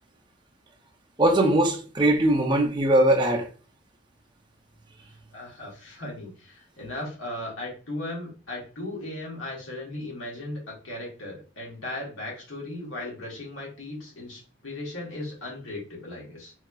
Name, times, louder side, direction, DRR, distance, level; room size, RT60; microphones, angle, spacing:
voice 1, 1.2-3.5, right 1 dB, 25° right, 0.5 m, -21 dB
voice 2, 5.3-16.5, left 2 dB, 85° left, 1.3 m, -37 dB
3.0 x 2.8 x 2.3 m
head